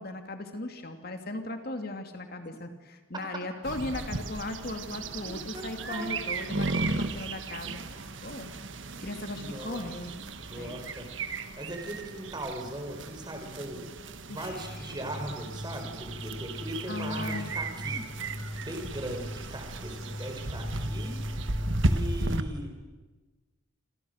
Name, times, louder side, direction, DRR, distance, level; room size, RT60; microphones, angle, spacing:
voice 1, 0.0-7.8 8.2-8.5 9.0-10.1 10.5-10.8 14.3-14.8 16.9-17.5, left 2 dB, 50° left, 6 dB, 2.7 m, -37 dB
sound 1, 3.6-22.4, right 2 dB, 65° right, 1.5 m, -35 dB
voice 2, 5.2-5.6 5.9-6.2 9.4-9.9 10.4-11.1 11.6-13.8 14.3-18.0 18.6-21.2 21.8-22.7, right 1 dB, 20° right, 3 dB, 4.3 m, -39 dB
sound 2, 14.6-22.0, equal, 15° left, 3.0 m, -40 dB
28.5 x 27.0 x 6.6 m, 1.3 s
head